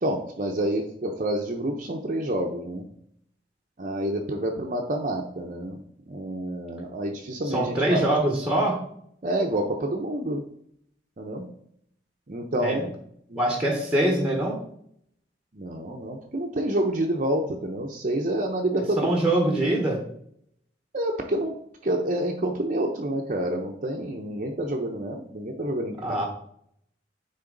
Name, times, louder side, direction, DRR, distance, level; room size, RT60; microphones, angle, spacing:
voice 1, 0.0-2.9 3.8-5.8 6.1-8.0 9.2-10.4 11.2-11.4 12.3-12.8 13.3-13.4 15.5-19.1 20.9-21.5 21.8-26.2, right 1 dB, 45° right, 0 dB, 0.8 m, -28 dB
voice 2, 7.4-8.8 12.6-12.9 13.3-14.6 19.0-20.0 26.0-26.3, right 1 dB, 5° right, 1 dB, 1.2 m, -24 dB
9.8 x 3.9 x 3.9 m, 0.68 s
head